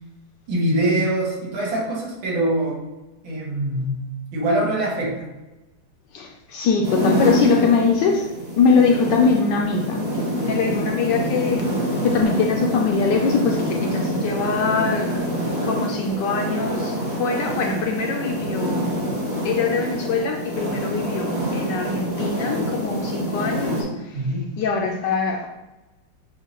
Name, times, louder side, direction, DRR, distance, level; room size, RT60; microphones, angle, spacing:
voice 1, 0.5-2.8 3.2-4.1 4.3-5.2 24.1-24.5, right 1 dB, 80° right, 2.0 m, -23 dB
voice 2, 6.1-10.1 10.4-19.2 19.4-24.2 24.6-25.5, left 4 dB, 75° left, 1.1 m, -23 dB
sound 1, 6.8-23.8, equal, 30° right, 1.1 m, -26 dB
7.1 x 2.5 x 2.9 m
omnidirectional pair, 2.2 m